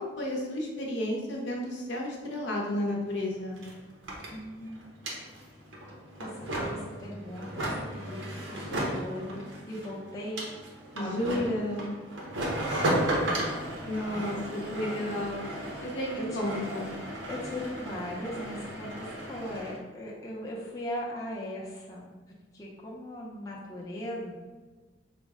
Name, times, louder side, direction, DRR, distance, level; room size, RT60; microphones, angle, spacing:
voice 1, 0.0-3.6 10.9-11.9 13.8-15.4 15.8-16.9, left 1 dB, 70° left, -1 dB, 0.7 m, -32 dB
sound 1, 2.9-3.0 3.2-19.8, right 1 dB, 80° right, 0.8 m, -35 dB
voice 2, 4.3-4.9 6.2-10.4 11.0-11.5 12.7-13.6 14.1-14.2 16.2-16.5 17.3-22.1 22.5-24.3, left 1 dB, 20° left, -5 dB, 0.5 m, -39 dB
5.0 x 2.1 x 3.5 m, 1.3 s
head